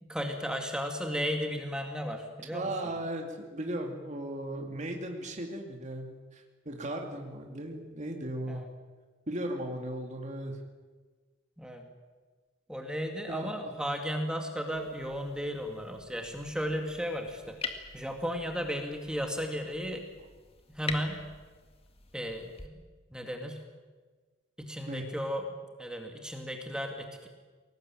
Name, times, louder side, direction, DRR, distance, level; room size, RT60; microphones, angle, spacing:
voice 1, 0.0-3.0 8.5-8.7 11.6-11.9 12.7-20.1 20.7-21.2 22.1-23.6 24.6-27.3, equal, 5° right, 3 dB, 2.2 m, -35 dB
voice 2, 2.5-8.6 9.3-10.6 13.3-13.7 24.9-25.0, right 1 dB, 40° right, 2 dB, 2.3 m, -37 dB
sound 1, 14.6-22.7, left 4 dB, 30° left, 2.0 m, -45 dB
22.0 x 19.0 x 8.9 m, 1.4 s
head